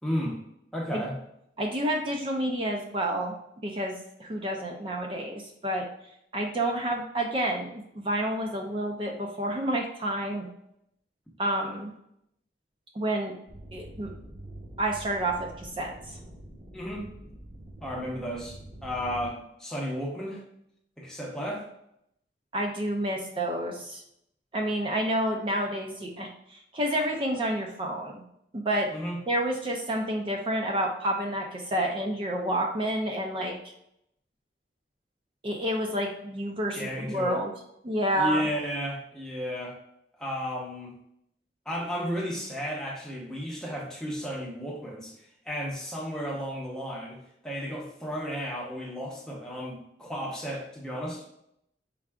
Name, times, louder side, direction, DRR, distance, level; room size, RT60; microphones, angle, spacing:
voice 1, 0.0-0.4 0.7-1.2 16.7-17.1 17.8-20.4 21.0-21.7 28.9-29.2 36.7-37.4 38.2-39.8 40.2-40.9 41.7-45.1 45.5-47.2 47.4-51.2, equal, 5° left, -3 dB, 0.8 m, -33 dB
voice 2, 1.6-3.3 3.6-5.9 6.3-10.5 11.4-11.9 12.9-13.4 13.7-14.1 14.8-15.9 22.5-24.0 24.5-28.2 28.5-28.9 29.3-33.6 35.4-37.5 37.8-38.4, right 1 dB, 30° right, 1 dB, 0.4 m, -29 dB
sound 1, 13.5-19.3, right 1 dB, 60° right, 1.2 m, -45 dB
4.6 x 3.6 x 2.3 m, 0.77 s
head